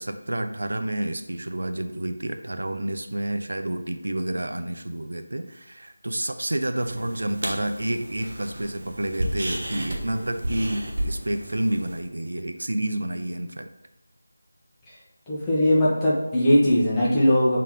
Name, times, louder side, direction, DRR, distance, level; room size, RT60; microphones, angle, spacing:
voice 1, 0.0-13.7, right 1 dB, 80° right, 8 dB, 0.6 m, -29 dB
sound 1, 6.8-12.0, right 1 dB, 45° right, 1.1 m, -33 dB
voice 2, 15.3-17.6, equal, 10° left, -8 dB, 1.2 m, -20 dB
6.6 x 3.8 x 3.7 m, 0.93 s
figure-of-eight pair, 170°, 0 cm